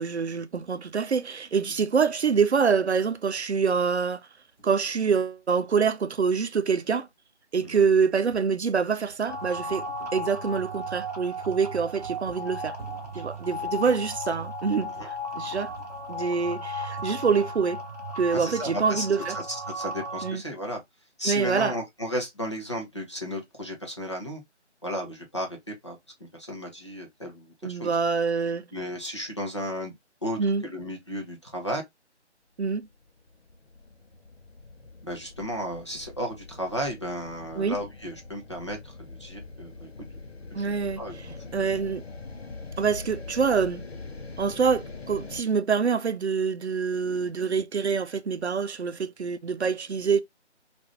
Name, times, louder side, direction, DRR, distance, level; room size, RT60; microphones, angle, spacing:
voice 1, 0.0-4.2 4.6-7.1 7.5-9.9 10.1-12.8 13.2-15.7 16.1-17.8 18.2-19.4 20.2-20.4 21.3-21.7 27.6-28.7 30.4-30.6 32.6-32.9 37.6-37.7 40.5-41.0 41.5-42.0 42.8-43.8 44.4-50.2, right 5 dB, 70° right, 0.5 m, -25 dB
sound 1, 4.6-4.7 7.8-16.6 16.9-17.7, right 2 dB, 20° right, 1.6 m, -51 dB
sound 2, 9.3-20.3, equal, 35° right, 0.8 m, -35 dB
voice 2, 18.3-19.1 19.3-20.8 21.2-24.4 24.8-28.0 28.7-29.9 30.2-31.8 35.0-39.9 40.5-41.2, equal, 25° left, 0.6 m, -34 dB
sound 3, 32.9-45.4, left 3 dB, 60° left, 0.8 m, -43 dB
2.9 x 2.5 x 3.4 m
figure-of-eight pair, 160°, 35 cm